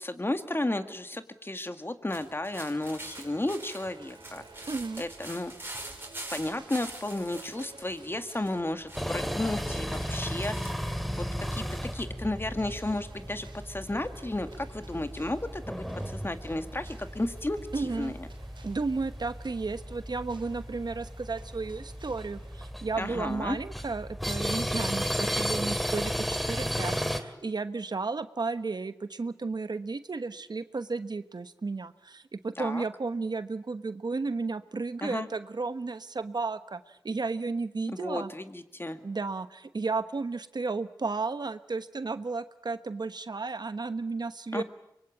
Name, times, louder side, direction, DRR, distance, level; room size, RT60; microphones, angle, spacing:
voice 1, 0.0-4.7 5.0-5.5 6.3-11.2 11.5-11.7 11.9-18.3 23.0-23.6 32.6-32.8 35.0-35.3 37.9-39.1 44.5-44.6, left 1 dB, 30° left, 9 dB, 2.0 m, -33 dB
sound 1, 2.1-12.0, right 1 dB, 30° right, 5.4 m, -45 dB
sound 2, 2.8-22.7, right 4 dB, 85° right, 3.2 m, -54 dB
voice 2, 4.7-5.0 17.7-18.1 18.6-38.3 39.0-44.6, right 3 dB, 65° right, 11 dB, 1.2 m, -33 dB
sound 3, 8.9-27.2, equal, ahead, 2.6 m, -34 dB
24.5 x 22.5 x 8.7 m, 0.85 s
cardioid pair, 45°, 8 cm